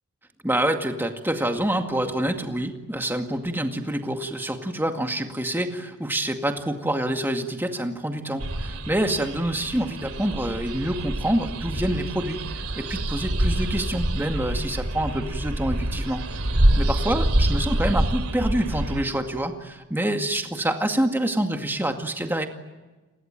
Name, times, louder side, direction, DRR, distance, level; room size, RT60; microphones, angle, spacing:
voice 1, 0.4-12.4 12.8-16.2 16.8-22.5, right 1 dB, 10° right, 5 dB, 2.1 m, -26 dB
sound 1, 8.4-19.0, right 1 dB, 80° right, 2.8 m, -26 dB
30.0 x 20.5 x 9.1 m, 1.2 s
head